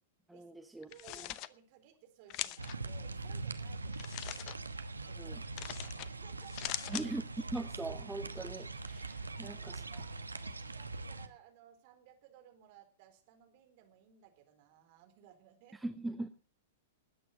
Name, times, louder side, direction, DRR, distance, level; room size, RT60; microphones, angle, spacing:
voice 1, 0.3-1.3 5.2-5.4 6.9-7.2 7.5-10.0 15.7-16.4, right 2 dB, 5° right, 8 dB, 0.9 m, -41 dB
sound 1, 0.8-1.5 2.3-2.8 3.9-4.6 5.6-6.1 6.4-7.1, left 15 dB, 40° left, 0.7 m, -41 dB
voice 2, 0.9-4.4 5.1-5.4 5.6-7.1 9.4-15.8, right 11 dB, 45° right, 5 dB, 4.1 m, -60 dB
sound 2, 2.6-11.3, right 3 dB, 80° right, 1.2 m, -42 dB
20.0 x 9.0 x 6.4 m, 0.42 s
figure-of-eight pair, 100°, 0 cm